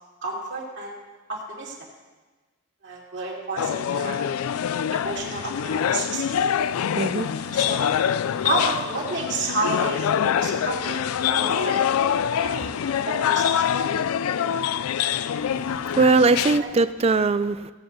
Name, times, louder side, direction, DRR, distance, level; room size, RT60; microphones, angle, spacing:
voice 1, 0.2-1.0 1.3-1.8 2.8-4.2 4.9-6.2 7.5-7.9 8.4-11.8 12.4-13.7 16.4-16.7, right 2 dB, 55° right, -3 dB, 2.9 m, -30 dB
sound 1, 3.6-16.6, left 8 dB, 90° left, 0.4 m, -25 dB
voice 2, 6.9-7.3 15.5-17.7, right 3 dB, 30° right, 13 dB, 0.4 m, -21 dB
17.5 x 7.8 x 4.0 m, 1.3 s
head